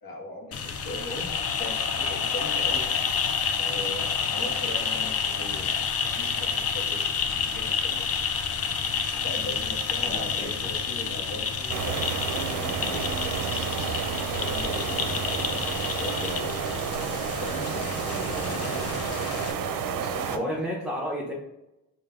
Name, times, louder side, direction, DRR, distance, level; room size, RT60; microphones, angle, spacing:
voice 1, 0.0-2.8 3.6-8.2 9.2-13.1 13.9-16.4 17.4-19.0 20.0-20.4, left 1 dB, 70° left, -1 dB, 1.3 m, -39 dB
sound 1, 0.5-19.5, left 6 dB, 45° left, 0.5 m, -29 dB
voice 2, 10.0-10.7 18.2-18.6 20.3-21.3, equal, ahead, -4 dB, 0.7 m, -33 dB
sound 2, 11.7-20.4, right 7 dB, 65° right, 0.5 m, -30 dB
3.5 x 2.7 x 3.4 m, 0.94 s
cardioid pair, 110°, 35 cm